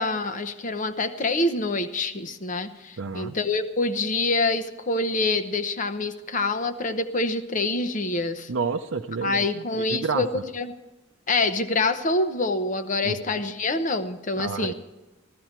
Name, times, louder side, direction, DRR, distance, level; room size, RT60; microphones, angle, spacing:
voice 1, 0.0-8.5 9.2-10.3 10.5-10.7 11.3-14.7, left 2 dB, 40° left, 9 dB, 0.8 m, -26 dB
voice 2, 3.0-3.4 8.5-10.4 13.0-13.4 14.4-14.7, right 5 dB, 80° right, 4 dB, 0.6 m, -30 dB
14.5 x 14.0 x 4.4 m, 1.1 s
head